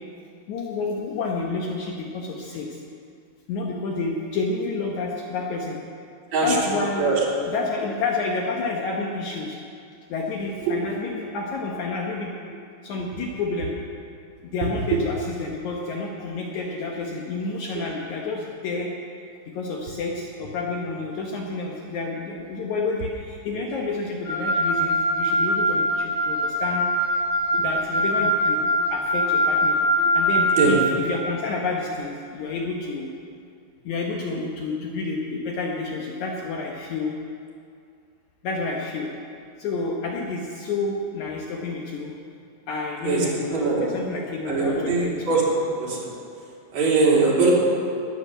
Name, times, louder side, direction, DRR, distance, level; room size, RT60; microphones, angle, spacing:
voice 1, 0.5-2.8 3.5-5.8 6.4-7.1 7.4-9.6 10.1-12.3 12.8-13.7 14.4-18.9 19.5-26.9 27.6-29.8 30.1-33.1 33.8-37.1 38.4-39.1 39.6-42.1 42.7-45.3, left 3 dB, 70° left, -1 dB, 2.3 m, -29 dB
voice 2, 6.3-7.2 10.7-10.9 14.9-15.0 27.5-27.6 30.6-30.7 43.0-43.2 43.5-43.8 44.5-46.1 46.7-47.5, right 4 dB, 55° right, -5 dB, 4.5 m, -22 dB
Wind instrument woodwind instrument, 24.2-30.7, equal, 30° left, 5.1 m, -22 dB
20.0 x 7.8 x 7.9 m, 2.4 s
omnidirectional pair, 3.8 m